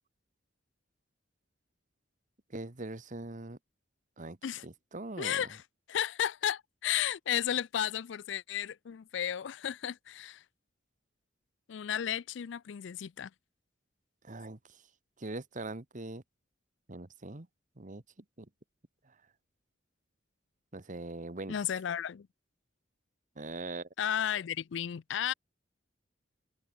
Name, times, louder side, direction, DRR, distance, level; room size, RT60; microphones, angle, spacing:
voice 1, 2.5-3.6 4.2-4.4 4.6-5.4 14.2-14.6 15.2-16.2 16.9-17.5 17.8-18.0 18.4-18.5 20.7-21.6 23.4-23.9, right 2 dB, 45° right, 1.4 m, -41 dB
voice 2, 5.2-5.6 5.9-10.4 11.7-13.3 21.5-22.3 24.0-25.3, left 10 dB, 65° left, 0.4 m, -33 dB
open air
head